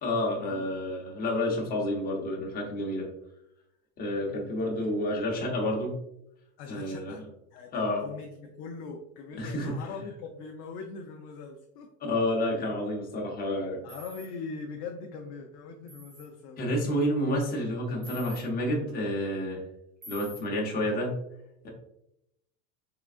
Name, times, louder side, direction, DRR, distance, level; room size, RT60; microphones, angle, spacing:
voice 1, 0.0-3.1 4.0-5.9 6.7-7.1 7.7-8.0 9.4-9.7 12.0-13.8 16.6-19.6 20.1-21.1 21.6-21.7, left 1 dB, 20° left, -2 dB, 0.8 m, -29 dB
voice 2, 4.2-4.9 6.6-7.2 7.5-11.9 13.8-16.7, left 4 dB, 45° left, 2 dB, 0.4 m, -42 dB
sound 1, 13.9-14.3 15.9-16.3 18.0-18.4 20.0-20.4, equal, 30° right, 0.7 m, -46 dB
3.8 x 3.5 x 2.4 m, 0.81 s
cardioid pair, 155°, 44 cm